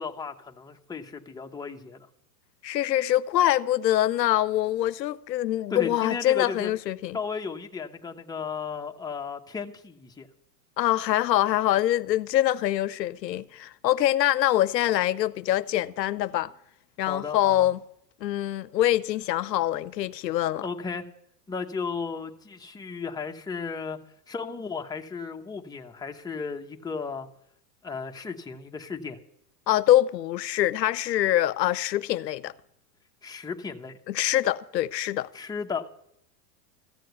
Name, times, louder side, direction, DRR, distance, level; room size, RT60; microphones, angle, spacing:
voice 1, 0.0-2.1 5.7-6.7 7.1-10.3 17.1-17.7 20.6-21.1 21.5-24.0 24.3-27.3 27.8-29.2 33.2-34.0 35.3-35.9, left 5 dB, 10° left, 1.0 m, -35 dB
voice 2, 2.6-7.2 10.8-16.5 17.0-17.8 18.2-20.7 29.7-32.5 34.1-35.3, left 13 dB, 90° left, 0.7 m, -24 dB
14.5 x 7.6 x 8.0 m
hypercardioid pair, 110°, 49 cm